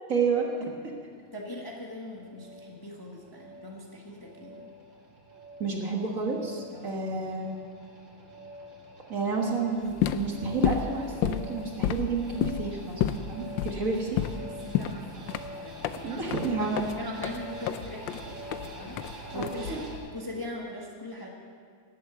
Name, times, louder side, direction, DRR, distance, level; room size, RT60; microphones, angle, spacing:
voice 1, 0.1-0.7 5.6-7.5 9.1-14.1 16.0-16.9 19.3-19.8, right 4 dB, 45° right, 0 dB, 1.8 m, -30 dB
sound 1, 1.0-20.0, right 1 dB, 75° right, 2.9 m, -46 dB
voice 2, 1.3-4.7 6.7-7.0 14.6-19.8 20.1-21.3, left 1 dB, 15° left, -1 dB, 1.3 m, -41 dB
sound 2, 9.8-20.0, left 10 dB, 80° left, 1.4 m, -31 dB
18.0 x 8.4 x 6.9 m, 2.1 s
omnidirectional pair, 2.1 m